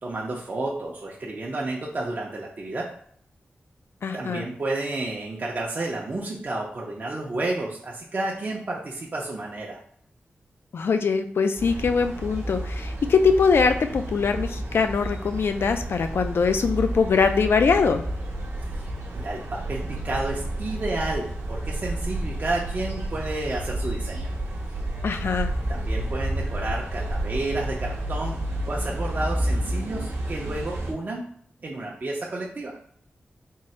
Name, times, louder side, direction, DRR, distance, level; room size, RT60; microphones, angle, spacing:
voice 1, 0.0-2.9 4.1-9.8 19.1-24.3 25.7-31.3 31.6-32.8, right 2 dB, 45° right, -2 dB, 0.6 m, -31 dB
voice 2, 4.0-4.5 10.7-18.0 25.0-25.5, left 5 dB, 70° left, 7 dB, 0.4 m, -22 dB
sound 1, 11.6-30.9, right 1 dB, 85° right, 0.8 m, -30 dB
3.7 x 2.0 x 4.2 m, 0.63 s
wide cardioid pair, 90°, 4 cm